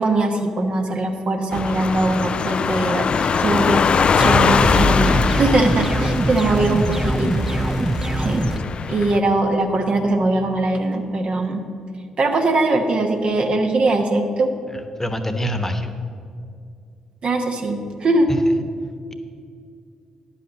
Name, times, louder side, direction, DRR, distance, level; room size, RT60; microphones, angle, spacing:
voice 1, 0.0-3.8 4.2-7.5 8.2-8.4 8.9-11.6 12.2-14.5 17.2-18.3, right 2 dB, 50° right, 4 dB, 1.1 m, -21 dB
sound 1, 1.5-9.2, left 5 dB, 45° left, 0.4 m, -21 dB
sound 2, 4.2-8.6, right 1 dB, 20° right, 0.7 m, -23 dB
voice 2, 14.7-15.9 18.3-18.5, equal, 15° left, 8 dB, 1.1 m, -26 dB
10.5 x 5.5 x 7.5 m, 2.3 s
hypercardioid pair, 40°, 2 cm